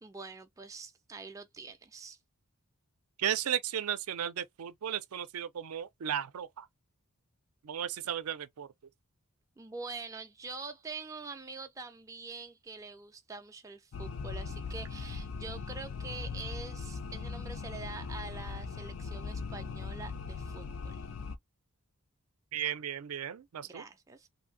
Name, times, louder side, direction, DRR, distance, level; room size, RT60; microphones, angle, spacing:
voice 1, 0.0-2.2 9.6-21.0 23.6-24.3, right 4 dB, 15° right, 0.3 m, -45 dB
voice 2, 3.2-6.7 7.6-8.7 22.5-23.8, right 9 dB, 85° right, 0.4 m, -35 dB
sound 1, 13.9-21.4, left 4 dB, 75° left, 0.4 m, -39 dB
2.7 x 2.6 x 2.6 m
head